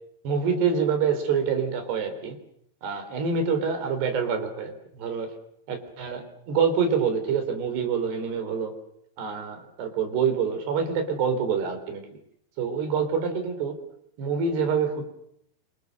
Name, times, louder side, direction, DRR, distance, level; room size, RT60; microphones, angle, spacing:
voice 1, 0.2-2.4 2.8-5.3 5.7-8.7 9.2-12.2 12.6-13.8 14.2-15.0, right 6 dB, 80° right, 7 dB, 5.9 m, -26 dB
28.0 x 27.0 x 6.6 m, 0.73 s
omnidirectional pair, 4.7 m